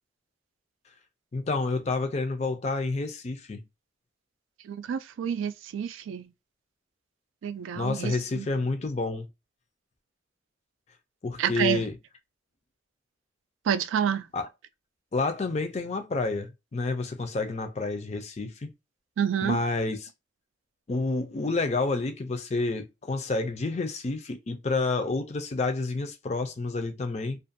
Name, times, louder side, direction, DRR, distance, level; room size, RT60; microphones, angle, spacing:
voice 1, 1.3-3.6 7.8-9.3 11.2-12.0 14.3-14.5 15.1-18.7 19.4-20.1 20.9-27.4, left 3 dB, 35° left, 0.4 m, -29 dB
voice 2, 4.6-6.3 7.4-8.5 11.4-11.8 13.7-14.2 19.2-19.6, right 8 dB, 90° right, 0.3 m, -28 dB
2.4 x 2.2 x 2.5 m
head